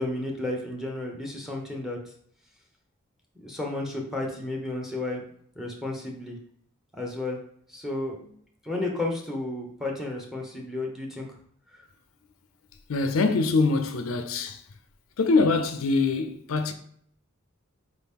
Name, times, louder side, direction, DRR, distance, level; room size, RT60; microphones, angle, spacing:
voice 1, 0.0-2.0 3.4-5.2 5.6-6.4 7.0-7.4 7.7-8.4 8.6-11.3, left 2 dB, ahead, 0.8 m, -32 dB
voice 2, 12.9-14.6 15.2-16.7, left 3 dB, 80° left, 0.4 m, -24 dB
4.2 x 2.9 x 3.6 m
head